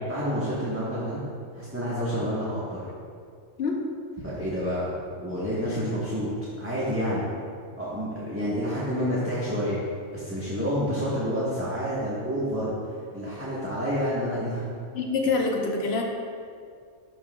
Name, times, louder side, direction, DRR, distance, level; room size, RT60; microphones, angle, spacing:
voice 1, 0.1-1.2 1.5-2.8 4.2-4.9 5.2-6.3 6.6-7.3 7.8-9.8 10.1-12.7 13.1-14.7, equal, 10° right, -9 dB, 1.2 m, -28 dB
voice 2, 14.9-16.0, left 4 dB, 60° left, 1 dB, 1.1 m, -25 dB
12.0 x 6.2 x 2.3 m, 2.2 s
omnidirectional pair, 1.3 m